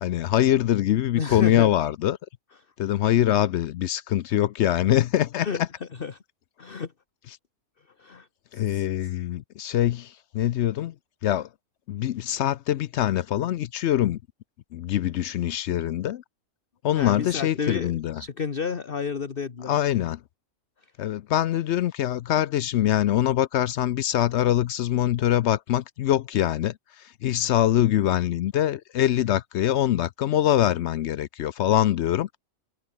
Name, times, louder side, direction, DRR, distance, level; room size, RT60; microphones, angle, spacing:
voice 1, 0.0-2.2 2.8-5.5 8.5-10.9 11.2-11.5 11.9-14.2 14.7-16.2 16.8-18.2 19.7-20.2 21.0-32.3, left 12 dB, 65° left, 0.7 m, -23 dB
voice 2, 1.2-1.7 5.4-6.2 6.6-6.9 8.0-8.3 8.7-8.9 16.9-19.7, left 6 dB, 40° left, 1.4 m, -31 dB
omnidirectional pair, 1.5 m